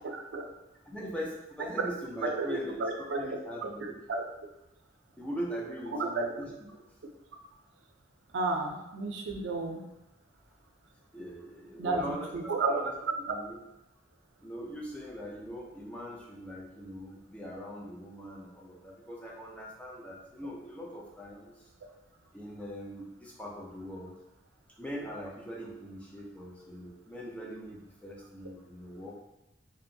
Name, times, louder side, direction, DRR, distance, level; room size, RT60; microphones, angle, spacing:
voice 1, 0.8-4.0 5.2-6.5 11.1-12.9 13.3-13.6 14.4-21.7 22.3-24.2 24.8-29.2, equal, 5° left, -3 dB, 0.4 m, -41 dB
voice 2, 2.2-3.3 3.8-4.2 5.9-6.3 8.3-9.8 11.8-12.8, right 3 dB, 75° right, 3 dB, 0.4 m, -32 dB
2.7 x 2.1 x 2.6 m, 0.89 s
head